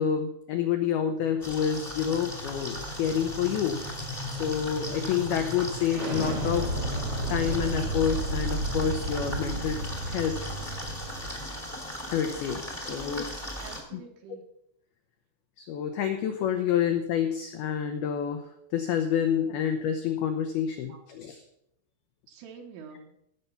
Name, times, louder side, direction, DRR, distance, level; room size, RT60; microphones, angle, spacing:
voice 1, 0.0-6.7 7.3-9.8 10.1-10.5 10.8-11.1 12.1-13.3 13.9-14.0 15.6-21.4, left 8 dB, 85° left, 6 dB, 2.2 m, -28 dB
sound 1, 1.2-11.4, right 1 dB, 50° right, 1.5 m, -34 dB
sound 2, 1.4-13.8, left 1 dB, 25° left, 0.8 m, -38 dB
voice 2, 13.6-14.5 20.9-21.1 22.3-23.2, right 6 dB, 80° right, 0 dB, 3.6 m, -47 dB
17.0 x 6.7 x 5.7 m, 0.75 s
omnidirectional pair, 5.7 m